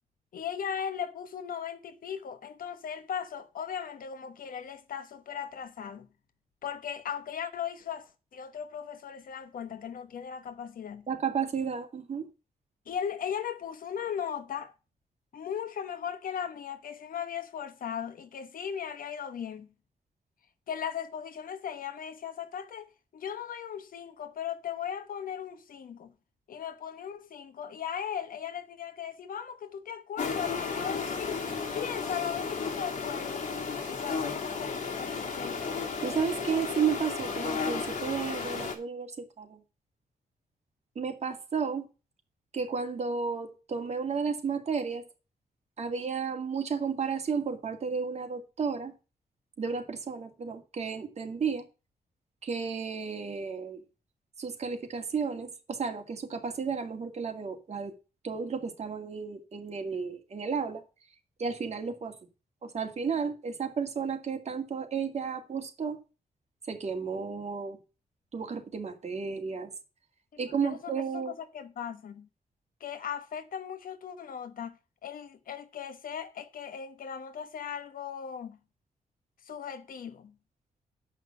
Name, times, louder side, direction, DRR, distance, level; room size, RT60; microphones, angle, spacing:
voice 1, 0.3-6.1 6.6-11.1 12.9-14.7 15.3-19.7 20.7-26.1 26.5-31.4 31.7-33.4 33.9-35.7 70.3-72.3 72.8-78.6 79.4-80.4, left 8 dB, 75° left, 1.1 m, -38 dB
voice 2, 11.1-12.3 36.0-39.6 41.0-41.9 42.5-45.0 45.8-48.9 49.6-51.6 52.4-53.8 54.4-57.9 58.2-60.8 61.4-62.1 62.6-66.0 66.7-67.8 68.3-69.7 70.4-71.3, right 6 dB, 50° right, 2.1 m, -33 dB
sound 1, 30.2-38.8, left 5 dB, 55° left, 2.7 m, -33 dB
7.6 x 5.7 x 7.4 m
wide cardioid pair, 120°, 15 cm